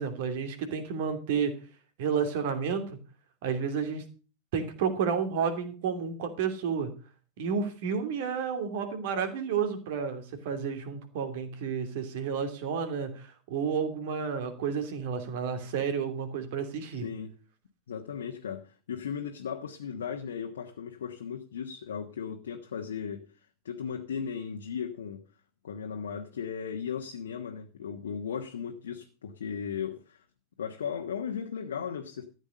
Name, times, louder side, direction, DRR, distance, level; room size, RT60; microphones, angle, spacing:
voice 1, 0.0-1.5 2.0-3.0 3.4-4.0 4.5-6.9 7.4-17.0, right 6 dB, 50° right, 2.7 m, -31 dB
voice 2, 16.9-17.3 17.9-23.3 23.6-25.2 25.6-30.2 30.6-32.2, left 7 dB, 65° left, 1.3 m, -36 dB
13.5 x 8.0 x 6.5 m
figure-of-eight pair, 90°, 0 cm